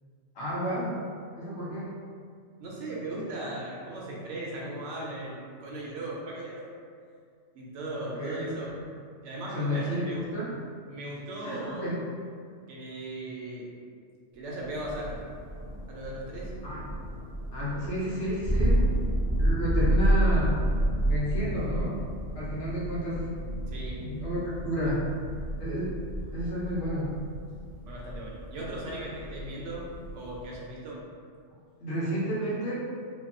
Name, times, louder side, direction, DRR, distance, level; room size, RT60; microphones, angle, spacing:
voice 1, 0.3-1.0 1.3-2.0 8.0-8.5 9.5-10.5 11.4-12.0 16.6-16.8 17.5-18.8 19.4-20.6 21.0-22.0 22.3-23.3 23.9-25.1 25.6-26.0 26.3-27.1 31.8-32.7, equal, 70° left, -7 dB, 1.0 m, -31 dB
voice 2, 2.6-6.7 7.5-8.7 9.2-10.3 10.9-11.9 12.7-13.7 14.3-15.2 15.9-16.5 23.7-24.0 27.9-29.9 30.1-31.0, right 1 dB, 75° right, -4 dB, 0.9 m, -37 dB
Thunder, 14.8-30.6, right 1 dB, 50° left, 0.3 m, -30 dB
2.7 x 2.2 x 2.4 m, 2.1 s
omnidirectional pair, 1.3 m